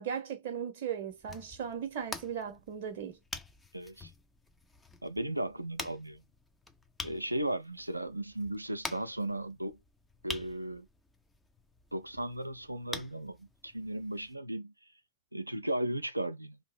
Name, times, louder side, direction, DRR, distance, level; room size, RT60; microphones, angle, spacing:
voice 1, 0.0-3.2, right 8 dB, 55° right, 0.7 m, -37 dB
sound 1, 1.1-14.4, left 3 dB, 10° left, 0.5 m, -47 dB
voice 2, 3.7-4.1 5.0-6.2 7.0-9.8 10.2-10.9 11.9-14.7 15.3-16.6, right 1 dB, 85° right, 0.4 m, -36 dB
2.8 x 2.6 x 4.1 m
figure-of-eight pair, 90°, 0 cm